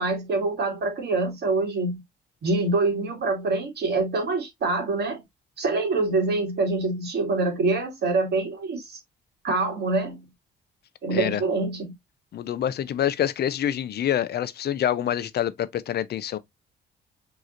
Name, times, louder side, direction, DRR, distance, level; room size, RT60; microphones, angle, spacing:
voice 1, 0.0-2.0 2.4-5.2 5.6-9.0 9.4-10.2 11.0-11.9, right 3 dB, 55° right, 2.1 m, -25 dB
voice 2, 11.1-11.4 12.3-16.4, left 10 dB, 55° left, 0.5 m, -26 dB
4.8 x 3.0 x 2.5 m
cardioid pair, 90°, 20 cm